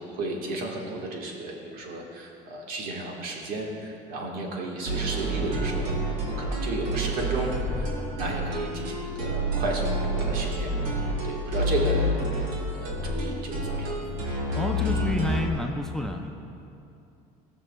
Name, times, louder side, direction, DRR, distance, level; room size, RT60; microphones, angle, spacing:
voice 1, 0.0-10.7 11.2-12.1 12.7-13.9, right 2 dB, 65° right, 0 dB, 1.5 m, -33 dB
sound 1, 4.9-15.5, right 1 dB, 90° right, 1.8 m, -28 dB
voice 2, 14.5-16.3, left 2 dB, 5° left, 2 dB, 0.5 m, -29 dB
17.5 x 6.2 x 2.3 m, 2.6 s
cardioid pair, 120°, 16 cm